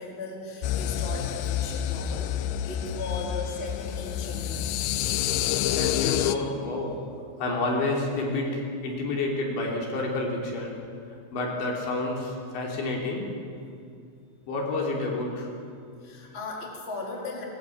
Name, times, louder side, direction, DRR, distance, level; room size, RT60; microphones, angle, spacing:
voice 1, 0.0-4.8 16.0-17.4, left 3 dB, 15° left, -2 dB, 3.4 m, -37 dB
sound 1, 0.6-6.4, left 11 dB, 85° left, 2.5 m, -28 dB
voice 2, 5.8-6.9 7.4-10.8 11.3-13.3 14.5-15.5, left 2 dB, 65° left, -1 dB, 5.4 m, -29 dB
22.0 x 20.5 x 9.0 m, 2.4 s
omnidirectional pair, 5.9 m